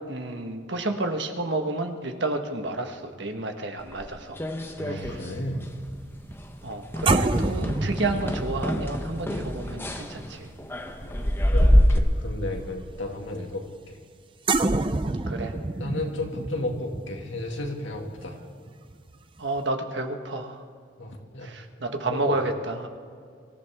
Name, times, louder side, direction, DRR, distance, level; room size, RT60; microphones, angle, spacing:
voice 1, 0.0-4.4 4.9-5.2 6.6-10.5 15.3-15.5 19.4-20.6 21.4-22.9, right 2 dB, 65° right, 5 dB, 1.4 m, -30 dB
sound 1, 3.9-5.4 5.6-6.0 6.3-6.5 6.9-12.0, equal, 10° left, 0.9 m, -25 dB
voice 2, 4.8-5.7 11.0-11.2 11.5-14.0 15.4-15.5 15.8-18.4 21.0-21.5 22.1-22.4, left 1 dB, 75° left, 2 dB, 2.1 m, -33 dB
sound 2, 4.9-11.5 11.9-12.1 14.5-19.1 19.4-19.6, right 2 dB, 25° right, 0.5 m, -29 dB
24.5 x 14.5 x 3.6 m, 2.3 s
head